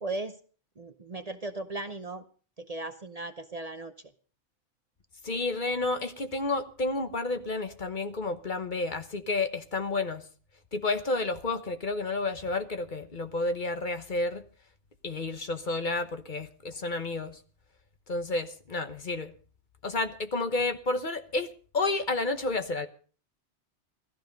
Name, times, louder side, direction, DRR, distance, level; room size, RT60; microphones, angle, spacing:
voice 1, 0.0-0.4 0.8-2.2 2.6-3.9, right 2 dB, 35° right, 0.8 m, -37 dB
voice 2, 5.2-10.2 10.7-14.4 15.0-17.4 18.1-19.3 19.8-22.9, left 3 dB, 45° left, 1.3 m, -31 dB
16.5 x 13.5 x 5.3 m
omnidirectional pair, 1.2 m